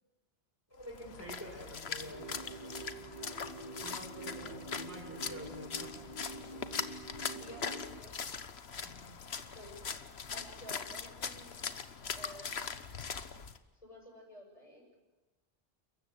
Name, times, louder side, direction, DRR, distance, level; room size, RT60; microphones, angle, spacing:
voice 1, 0.7-2.3 3.8-6.0 8.8-9.2, equal, 15° right, -5 dB, 6.0 m, -48 dB
Splash splatter, 0.8-13.6, left 6 dB, 80° left, 1.5 m, -41 dB
sound 1, 2.0-8.0, right 2 dB, 30° right, 2.1 m, -47 dB
voice 2, 3.1-3.9 4.3-4.6 7.4-8.4 9.5-9.8 10.3-11.7 12.2-12.7 13.8-15.0, equal, 35° left, 1 dB, 8.0 m, -53 dB
29.0 x 15.0 x 9.7 m, 1.1 s
omnidirectional pair, 1.1 m